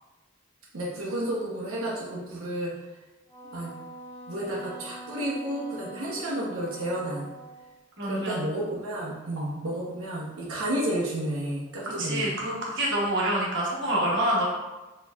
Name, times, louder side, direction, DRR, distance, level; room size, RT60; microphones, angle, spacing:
voice 1, 0.7-2.7 3.5-3.7 4.3-7.3 8.0-12.3, right 1 dB, 85° right, -5 dB, 0.8 m, -31 dB
Wind instrument woodwind instrument, 3.3-7.8, right 1 dB, 15° left, 0.8 m, -44 dB
voice 2, 8.0-8.4 9.4-9.5 12.0-14.5, right 1 dB, 60° right, -4 dB, 1.0 m, -27 dB
4.3 x 3.0 x 2.3 m, 1.1 s
head